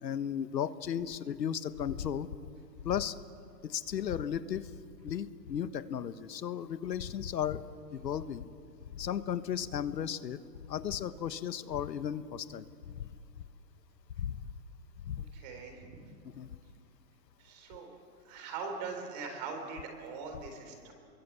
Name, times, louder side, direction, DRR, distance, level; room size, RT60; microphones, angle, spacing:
voice 1, 0.0-2.3 2.8-3.2 3.6-4.7 5.0-7.6 7.9-8.5 8.9-10.4 10.7-13.1 14.2-14.5 15.0-15.2 16.4-16.6, left 9 dB, 85° left, 13 dB, 1.4 m, -35 dB
voice 2, 15.3-16.0 17.4-18.0 18.2-20.9, right 4 dB, 25° right, 4 dB, 3.9 m, -41 dB
29.0 x 23.0 x 8.4 m, 2.3 s
hypercardioid pair, 175°, 49 cm